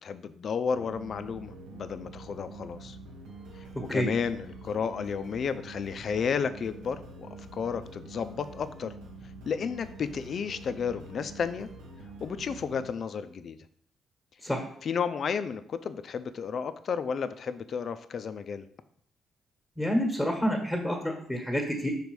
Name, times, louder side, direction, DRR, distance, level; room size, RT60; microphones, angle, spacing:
voice 1, 0.0-3.0 3.9-8.9 9.5-11.7 12.2-13.6 14.8-18.6, left 6 dB, 55° left, 12 dB, 0.5 m, -32 dB
sound 1, 0.7-12.9, right 2 dB, 85° right, 1.3 m, -46 dB
voice 2, 19.8-21.9, equal, 5° left, 1 dB, 1.4 m, -28 dB
5.3 x 4.2 x 4.8 m, 0.62 s
cardioid pair, 90°, 0 cm